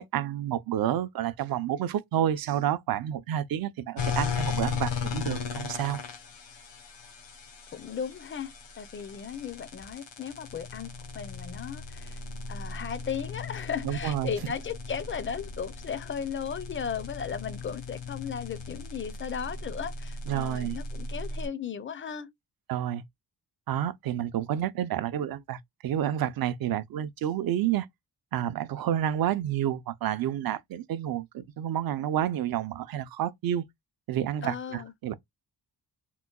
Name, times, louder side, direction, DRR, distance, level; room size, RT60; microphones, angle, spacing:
voice 1, 0.0-6.0 13.8-14.3 20.3-20.8 22.7-23.0 23.7-27.9 28.3-33.6 34.1-35.1, right 11 dB, 55° right, 0.5 m, -29 dB
sound 1, 4.0-21.5, left 5 dB, 80° left, 1.1 m, -37 dB
voice 2, 7.7-12.2 12.5-22.3 34.4-34.9, left 7 dB, 30° left, 0.5 m, -36 dB
3.8 x 2.2 x 2.2 m
cardioid pair, 115°, 43 cm